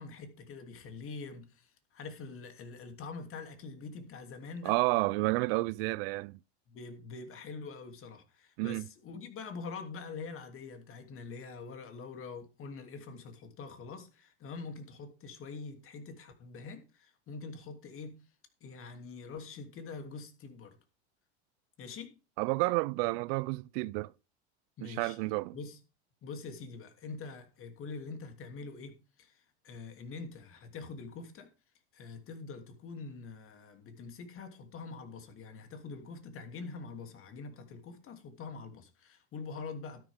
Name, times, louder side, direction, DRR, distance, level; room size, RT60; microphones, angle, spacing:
voice 1, 0.0-4.8 6.7-18.1 18.6-20.8 21.8-22.1 24.8-25.2 25.5-25.8 26.2-31.5 31.9-40.0, left 4 dB, 40° left, 2.9 m, -45 dB
voice 2, 4.6-6.4 8.6-8.8 22.4-24.1 24.8-25.6, right 23 dB, 60° right, 0.5 m, -30 dB
12.5 x 11.0 x 3.6 m
hypercardioid pair, 105°, 34 cm